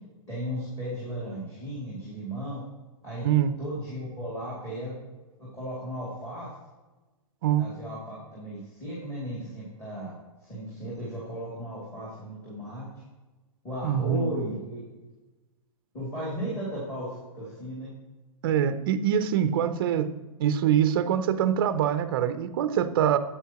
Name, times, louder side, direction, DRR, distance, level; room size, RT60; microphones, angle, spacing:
voice 1, 0.3-2.6 3.0-3.2 3.6-5.0 5.4-6.5 7.6-10.1 10.4-12.9 13.6-14.8 15.9-17.9, equal, 15° left, -8 dB, 2.6 m, -35 dB
voice 2, 3.2-3.5 7.4-7.7 13.8-14.4 18.4-20.1 20.4-23.2, right 9 dB, 40° right, 11 dB, 0.5 m, -24 dB
9.2 x 8.1 x 2.9 m, 1.1 s
hypercardioid pair, 165°, 19 cm